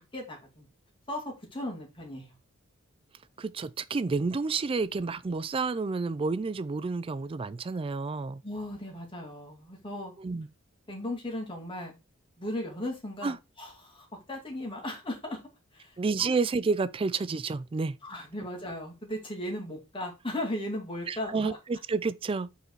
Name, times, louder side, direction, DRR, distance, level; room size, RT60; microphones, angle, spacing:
voice 1, 0.1-0.7 1.1-2.3 8.4-10.1 10.9-11.9 12.4-15.4 15.7-16.3 18.0-21.6, left 1 dB, 25° left, 2.4 m, -37 dB
voice 2, 3.4-8.4 10.2-10.5 13.2-13.4 16.0-18.0 21.1-22.5, right 4 dB, 25° right, 0.3 m, -30 dB
5.6 x 4.4 x 4.0 m
head